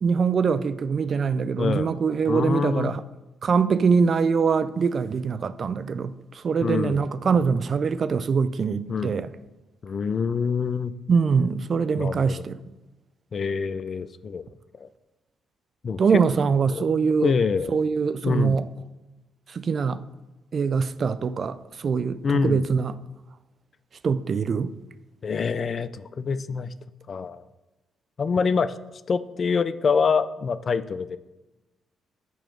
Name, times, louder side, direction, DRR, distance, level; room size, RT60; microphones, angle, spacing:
voice 1, 0.0-3.0 3.4-9.3 11.1-12.6 16.0-17.3 17.7-18.6 19.5-20.0 20.5-22.9 24.0-24.7, right 5 dB, 50° right, 0.3 m, -23 dB
voice 2, 1.6-1.9 2.3-2.9 6.6-7.0 8.9-9.2 9.8-10.9 12.0-12.4 13.3-14.5 14.7-14.9 15.8-16.0 16.7-16.9 17.2-17.8 18.2-18.6 22.2-22.6 25.2-26.7 27.1-27.4 28.2-31.2, left 5 dB, 50° left, 0.3 m, -26 dB
6.8 x 3.0 x 5.9 m
supercardioid pair, 55°, 0 cm